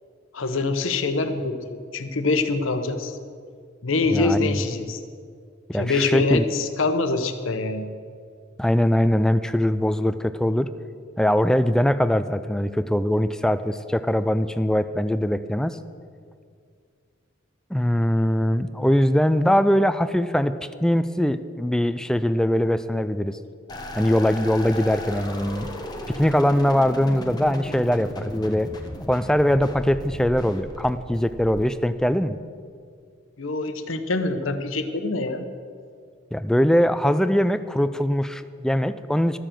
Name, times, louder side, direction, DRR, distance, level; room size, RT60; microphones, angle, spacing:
voice 1, 0.3-1.5 1.9-3.1 3.8-5.0 5.7-7.8 33.4-35.5, left 3 dB, 80° left, 8 dB, 0.9 m, -24 dB
voice 2, 4.1-4.6 5.7-6.4 8.6-10.7 11.2-15.8 17.7-20.5 20.8-23.4 23.9-25.7 26.2-28.7 29.1-32.4 36.3-39.4, equal, 5° left, 12 dB, 0.3 m, -21 dB
sound 1, 23.7-32.2, left 1 dB, 20° left, 1.0 m, -36 dB
12.5 x 6.9 x 7.5 m, 2.2 s
head